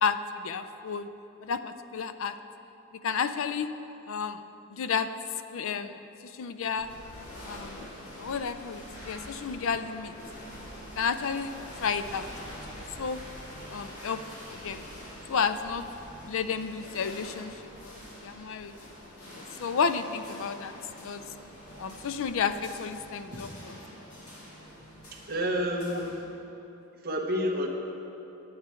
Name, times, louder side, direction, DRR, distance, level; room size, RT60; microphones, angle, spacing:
voice 1, 0.0-1.1 1.4-2.3 3.0-3.7 4.1-4.4 4.7-5.1 5.5-6.9 7.5-7.9 8.2-10.1 11.0-11.5 11.8-12.3 12.8-13.2 13.7-14.2 14.5-14.8 15.3-18.7 19.3-20.7 21.0-21.2 21.8-23.5, left 6 dB, 60° left, 11 dB, 0.4 m, -31 dB
sound 1, 6.7-26.2, equal, 85° left, 2.2 m, -45 dB
voice 2, 25.1-26.2 26.9-27.7, equal, 45° right, 1 dB, 1.1 m, -30 dB
9.5 x 8.8 x 4.4 m, 3.0 s
head